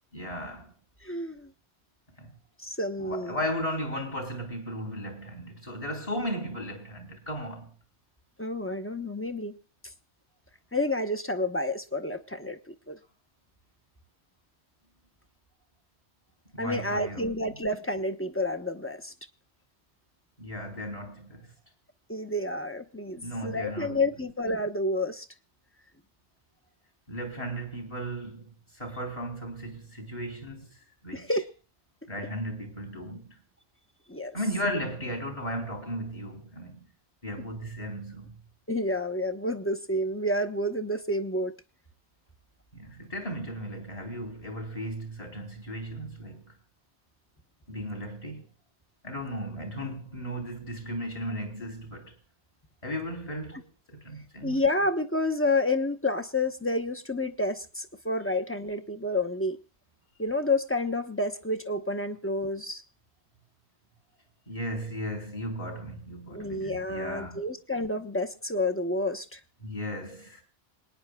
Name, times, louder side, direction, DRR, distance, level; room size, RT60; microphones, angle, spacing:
voice 1, 0.1-0.7 2.2-2.4 3.0-7.7 16.5-17.4 20.4-21.5 23.2-24.0 27.1-31.3 32.1-33.4 34.3-36.9 37.2-38.4 42.7-46.5 47.7-48.5 49.0-52.2 52.8-54.6 64.5-67.5 69.6-70.4, equal, 30° left, 3.9 m, -36 dB
voice 2, 1.0-1.5 2.6-3.4 8.4-9.6 10.7-13.0 16.6-19.1 22.1-25.2 31.1-31.5 34.1-34.3 38.7-41.5 54.4-59.6 60.2-62.8 66.3-69.4, left 1 dB, 15° left, 0.8 m, -29 dB
27.0 x 9.7 x 2.3 m
omnidirectional pair, 1.1 m